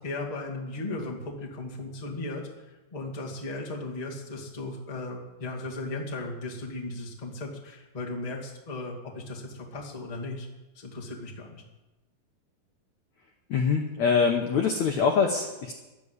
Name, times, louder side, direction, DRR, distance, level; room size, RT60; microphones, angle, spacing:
voice 1, 0.0-2.6 2.9-10.5 10.7-11.6, left 2 dB, 20° left, -2 dB, 1.0 m, -36 dB
voice 2, 13.5-15.7, left 5 dB, 85° left, 3 dB, 1.6 m, -24 dB
11.5 x 10.5 x 8.2 m, 1.1 s
omnidirectional pair, 4.8 m